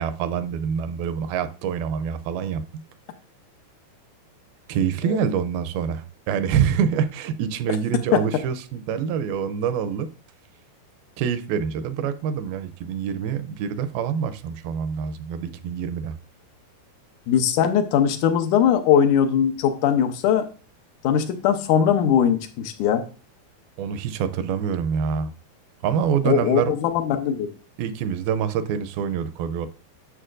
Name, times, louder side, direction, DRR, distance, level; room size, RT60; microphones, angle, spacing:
voice 1, 0.0-2.6 4.7-10.1 11.2-16.2 23.8-25.3 25.8-26.7 27.8-29.7, right 7 dB, 80° right, 10 dB, 2.3 m, -26 dB
voice 2, 17.3-20.5 21.0-23.1 26.3-27.5, left 8 dB, 80° left, 7 dB, 1.8 m, -20 dB
11.0 x 6.9 x 2.5 m, 0.36 s
omnidirectional pair, 4.5 m